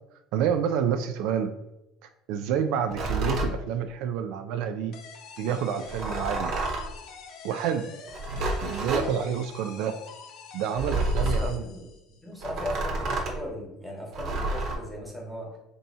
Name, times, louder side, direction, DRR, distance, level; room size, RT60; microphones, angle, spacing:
voice 1, 0.3-1.5 2.3-4.9 5.4-6.5 7.4-7.9 8.3-9.9 10.5-11.7, right 8 dB, 75° right, 7 dB, 0.3 m, -28 dB
sound 1, 2.9-3.5 5.9-6.9 8.1-9.1 10.8-11.5 12.4-13.4 14.1-14.8, right 2 dB, 45° right, 0.9 m, -29 dB
sound 2, 4.9-12.3, left 6 dB, 55° left, 0.6 m, -46 dB
voice 2, 11.2-11.9 12.2-15.6, equal, 5° left, -2 dB, 1.3 m, -37 dB
3.4 x 2.7 x 4.2 m, 0.90 s
cardioid pair, 140°, 0 cm